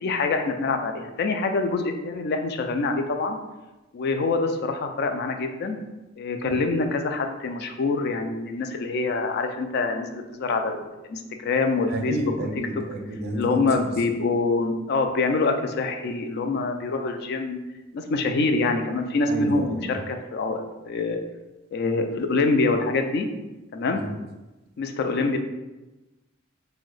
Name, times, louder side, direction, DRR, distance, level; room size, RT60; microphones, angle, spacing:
voice 1, 0.0-3.4 3.9-5.8 6.2-10.8 11.1-12.3 13.3-17.6 17.9-21.2 21.7-23.3 23.7-24.0 24.8-25.4, left 3 dB, 55° left, 6 dB, 0.3 m, -25 dB
voice 2, 11.9-13.9 19.3-20.0 23.9-24.1, right 1 dB, 55° right, 2 dB, 0.5 m, -30 dB
2.7 x 2.1 x 3.9 m, 1.1 s
head